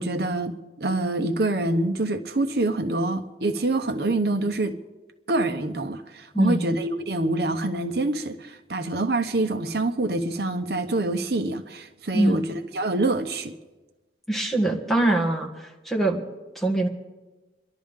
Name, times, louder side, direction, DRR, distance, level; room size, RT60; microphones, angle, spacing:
voice 1, 0.0-4.8 5.3-13.6, right 2 dB, 65° right, 7 dB, 0.9 m, -26 dB
voice 2, 6.3-6.7 12.1-12.4 14.3-16.2 16.6-16.9, right 2 dB, ahead, 0 dB, 1.8 m, -23 dB
29.0 x 11.5 x 3.7 m, 1.2 s
head